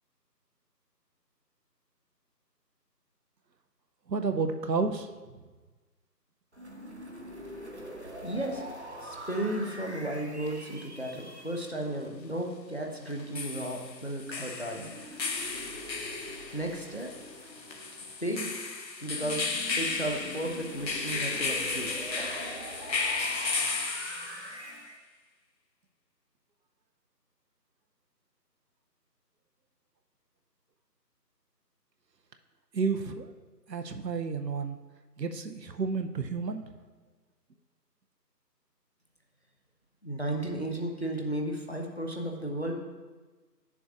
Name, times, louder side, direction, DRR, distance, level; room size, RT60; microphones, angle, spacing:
voice 1, 4.1-5.1 32.7-33.3 33.7-34.8 35.2-36.7, right 4 dB, 75° right, 7 dB, 0.7 m, -31 dB
sound 1, 6.5-11.6 14.7-18.5 19.2-25.0, equal, 45° right, 0.7 m, -44 dB
voice 2, 8.2-8.6 9.0-14.9 16.5-17.1 18.2-18.5 19.0-19.5 19.8-21.9 22.2-22.5 40.0-42.7, right 1 dB, 40° left, 1 dB, 0.6 m, -34 dB
sound 2, 10.5-10.6 13.1-24.7, left 4 dB, 80° left, 0.9 m, -34 dB
10.0 x 6.9 x 2.4 m, 1.3 s
figure-of-eight pair, 170°, 50 cm